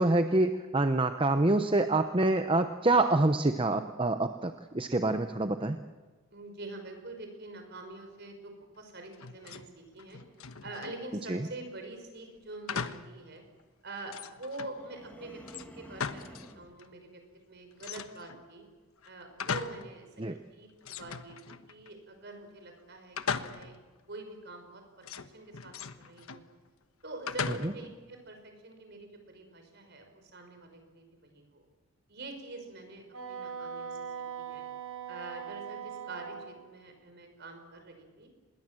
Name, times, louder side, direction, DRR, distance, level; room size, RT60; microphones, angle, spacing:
voice 1, 0.0-5.8 11.3-11.4 20.2-20.4 27.6-27.7, right 2 dB, 25° right, 8 dB, 0.8 m, -26 dB
voice 2, 6.3-10.2 10.6-13.4 13.8-15.4 15.7-17.2 17.5-18.7 19.1-23.7 24.1-25.1 25.3-26.4 27.0-31.6 32.1-34.0 34.4-34.6 35.1-38.3, right 2 dB, 50° right, 5 dB, 5.7 m, -45 dB
sound 1, 9.1-9.7 10.0-11.0 12.7-13.2 13.6-13.7 14.1-14.8 15.5-16.5 16.8-16.9 17.8-18.4 19.0-19.9 20.3-20.4 20.8-21.9 23.2-23.9 25.0-26.5 27.3-27.9, left 6 dB, 75° left, 1.2 m, -38 dB
sound 2, 14.6-16.7, equal, 5° left, 2.5 m, -50 dB
Wind instrument woodwind instrument, 33.1-36.6, right 7 dB, 85° right, 7.1 m, -40 dB
26.5 x 21.5 x 7.7 m, 1.3 s
head